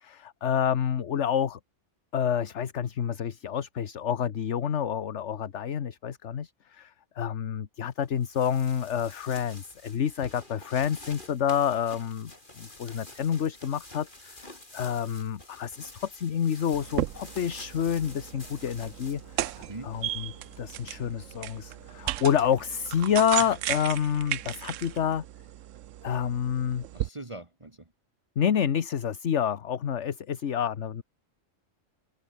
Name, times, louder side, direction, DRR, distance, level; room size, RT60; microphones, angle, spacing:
voice 1, 0.0-1.6 2.1-12.3 12.6-14.5 14.7-20.3 20.6-25.2 26.0-26.8 28.4-31.0, left 8 dB, 65° left, 1.4 m, -28 dB
sound 1, 8.0-20.5, left 2 dB, 40° left, 4.9 m, -49 dB
sound 2, 16.7-25.2, left 2 dB, 85° left, 6.4 m, -56 dB
sound 3, 16.7-27.1, right 13 dB, 80° right, 1.0 m, -35 dB
voice 2, 19.6-20.0 23.4-23.5 26.9-27.9, right 2 dB, 25° right, 1.7 m, -42 dB
omnidirectional pair, 1.3 m